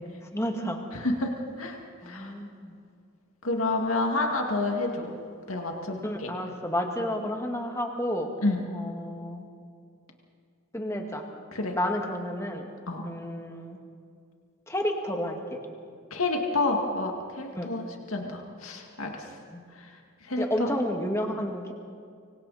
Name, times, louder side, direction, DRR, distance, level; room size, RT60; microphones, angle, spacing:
voice 1, 0.3-0.8 2.0-2.8 6.0-8.3 8.7-9.4 10.7-11.2 11.7-12.7 13.0-13.8 14.7-15.6 17.6-17.7 19.5-19.6 20.4-21.7, equal, 15° left, 2 dB, 1.9 m, -31 dB
voice 2, 0.9-1.8 2.1-2.3 3.4-5.1 5.5-6.3 8.4-8.6 11.5-11.8 12.9-13.0 16.1-19.2 20.3-20.8, left 2 dB, 75° left, 1 dB, 2.2 m, -29 dB
25.5 x 24.0 x 4.2 m, 2.3 s
head